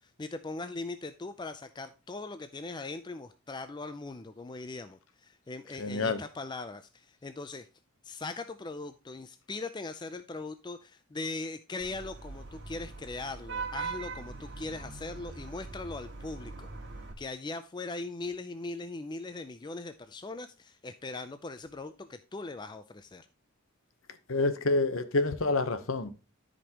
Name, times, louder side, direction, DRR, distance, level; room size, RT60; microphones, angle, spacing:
voice 1, 0.0-7.7 8.0-16.7 17.2-23.3, left 3 dB, 20° left, 0.4 m, -40 dB
voice 2, 5.8-6.2 24.3-26.1, left 2 dB, 65° left, 1.0 m, -28 dB
Vehicle horn car horn honking / Traffic noise roadway noise, 11.8-17.1, right 4 dB, 50° right, 1.9 m, -41 dB
13.0 x 5.2 x 2.9 m
head